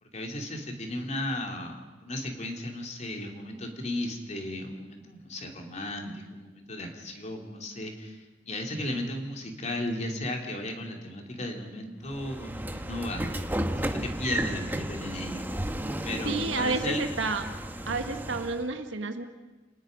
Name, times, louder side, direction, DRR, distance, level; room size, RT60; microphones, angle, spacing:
voice 1, 0.0-13.3 13.8-15.7 16.0-17.0, left 1 dB, 35° left, 2 dB, 3.0 m, -35 dB
Train / Sliding door, 12.1-18.7, right 1 dB, 10° right, 1.1 m, -33 dB
voice 2, 16.2-17.4 17.9-19.3, right 3 dB, 80° right, 6 dB, 1.6 m, -30 dB
29.5 x 19.0 x 5.3 m, 1.2 s
head